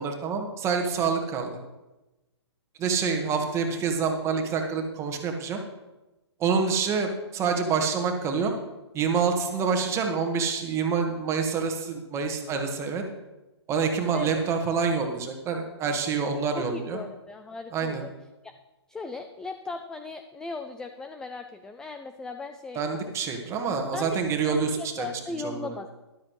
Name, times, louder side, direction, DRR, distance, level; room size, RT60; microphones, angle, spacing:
voice 1, 0.0-1.5 2.8-5.6 6.4-8.5 8.9-13.0 13.7-17.0 17.7-18.0 22.7-25.1 25.4-25.7, right 5 dB, 20° right, 4 dB, 1.5 m, -27 dB
voice 2, 16.5-18.1 18.4-18.5 18.9-22.8 23.9-25.9, left 3 dB, 5° left, 8 dB, 0.3 m, -37 dB
13.0 x 12.0 x 3.2 m, 1.0 s
figure-of-eight pair, 130°, 14 cm